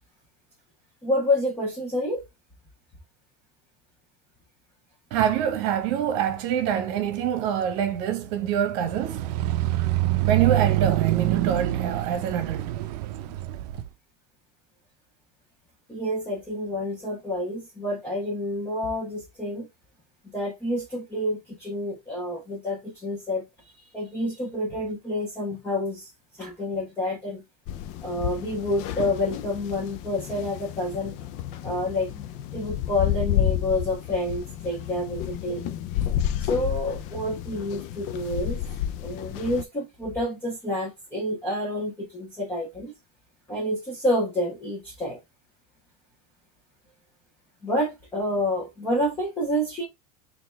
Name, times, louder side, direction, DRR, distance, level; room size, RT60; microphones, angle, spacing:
voice 1, 1.0-2.2 13.2-13.4 15.9-19.7 20.3-23.5 23.9-26.1 26.4-27.4 28.0-31.2 31.6-35.7 36.4-38.6 39.0-42.9 43.5-45.2 47.6-49.8, left 1 dB, 10° left, 1.3 m, -28 dB
voice 2, 5.1-9.3 9.8-13.1 13.4-13.6, right 9 dB, 55° right, 1.1 m, -26 dB
sound 1, 8.8-13.8, right 15 dB, 85° right, 0.5 m, -25 dB
sound 2, 27.7-39.6, left 11 dB, 40° left, 0.4 m, -31 dB
4.1 x 2.8 x 3.3 m
supercardioid pair, 170°, 20 cm